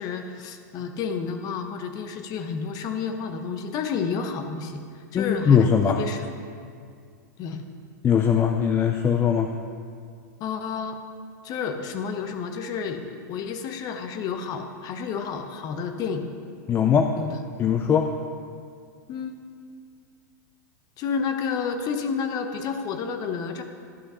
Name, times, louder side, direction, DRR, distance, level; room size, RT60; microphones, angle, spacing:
voice 1, 0.0-6.2 7.4-7.6 10.4-11.0 11.4-16.3 17.2-17.4 19.1-19.4 21.0-23.6, left 6 dB, 40° left, 6 dB, 1.0 m, -30 dB
voice 2, 5.1-6.0 8.0-9.5 16.7-17.2 17.6-18.2, left 7 dB, 25° left, 5 dB, 0.4 m, -20 dB
12.0 x 5.6 x 5.6 m, 2.2 s
hypercardioid pair, 115°, 10 cm